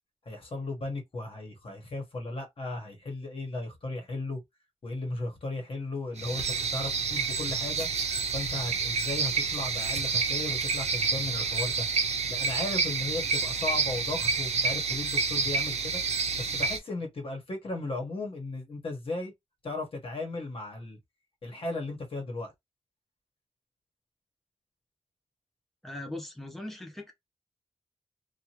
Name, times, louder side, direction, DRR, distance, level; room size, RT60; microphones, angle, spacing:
voice 1, 0.2-4.4 4.8-7.9 8.3-11.8 12.3-16.0 16.4-19.3 19.6-21.0 21.4-22.5, left 2 dB, 55° left, 1.2 m, -36 dB
sound 1, 6.2-16.8, right 5 dB, 85° right, 0.6 m, -29 dB
voice 2, 25.8-27.1, left 1 dB, ahead, 0.8 m, -39 dB
2.7 x 2.5 x 2.9 m
wide cardioid pair, 85°, 11 cm